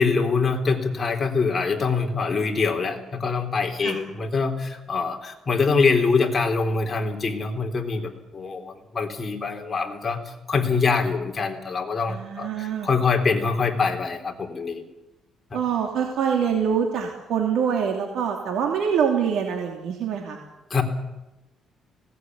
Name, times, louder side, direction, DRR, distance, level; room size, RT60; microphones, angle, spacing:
voice 1, 0.0-14.8 15.5-15.6 20.7-20.8, left 4 dB, 30° left, 3 dB, 3.7 m, -24 dB
voice 2, 12.1-12.9 15.5-20.4, right 7 dB, 75° right, 2 dB, 2.9 m, -25 dB
19.5 x 18.0 x 9.6 m, 1.0 s
cardioid pair, 105°, 0 cm